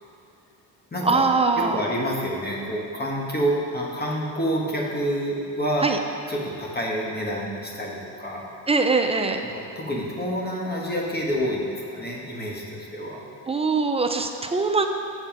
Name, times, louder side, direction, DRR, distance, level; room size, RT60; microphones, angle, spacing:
voice 1, 1.0-1.9 5.8-6.0 8.7-9.4 13.5-14.9, right 4 dB, 15° right, 5 dB, 0.4 m, -22 dB
voice 2, 1.6-5.9 6.3-8.4 9.5-13.2, equal, 25° left, -2 dB, 1.4 m, -28 dB
7.2 x 4.4 x 5.9 m, 2.6 s
cardioid pair, 95°, 42 cm